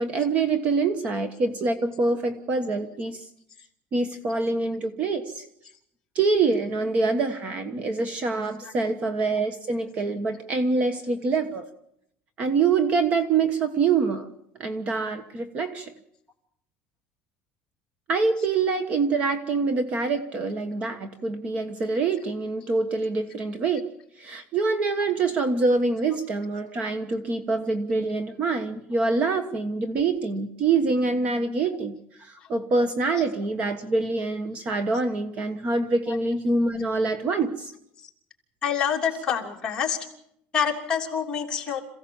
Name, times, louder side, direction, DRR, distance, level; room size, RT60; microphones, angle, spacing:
voice 1, 0.0-3.3 3.9-5.5 6.1-11.7 12.4-14.3 14.6-15.9 18.1-23.9 24.2-37.7, right 3 dB, 30° right, 10 dB, 1.2 m, -25 dB
voice 2, 38.6-40.0 40.5-41.8, left 7 dB, 15° left, -2 dB, 3.1 m, -26 dB
27.0 x 16.0 x 7.2 m, 0.75 s
cardioid pair, 175°, 4 cm